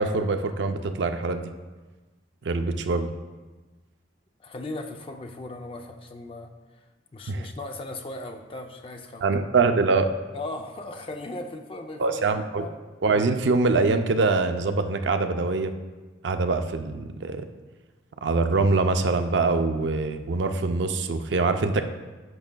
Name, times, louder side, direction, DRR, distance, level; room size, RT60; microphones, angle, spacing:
voice 1, 0.0-1.5 2.4-3.1 7.3-7.5 9.2-10.1 12.0-12.7 13.0-15.7 16.2-17.5 18.2-21.8, right 3 dB, 75° right, 7 dB, 0.5 m, -24 dB
voice 2, 4.4-6.5 7.1-9.3 10.3-12.3 12.6-12.8, left 2 dB, 30° left, 5 dB, 0.4 m, -37 dB
10.5 x 6.2 x 2.2 m, 1.3 s
head